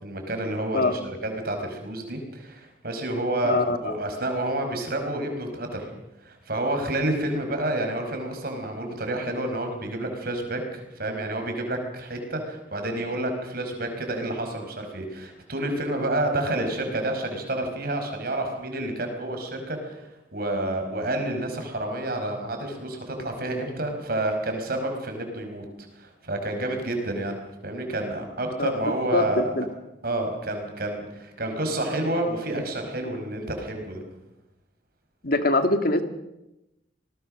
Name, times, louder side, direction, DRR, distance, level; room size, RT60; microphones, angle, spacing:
voice 1, 0.0-5.9 6.2-25.6 26.0-27.3 27.6-29.5 30.0-34.0, right 1 dB, 55° right, 4 dB, 5.1 m, -29 dB
voice 2, 3.4-3.9 28.6-28.7 29.1-29.6 35.2-36.0, left 2 dB, 55° left, 8 dB, 2.1 m, -23 dB
25.5 x 20.0 x 6.5 m, 0.92 s
head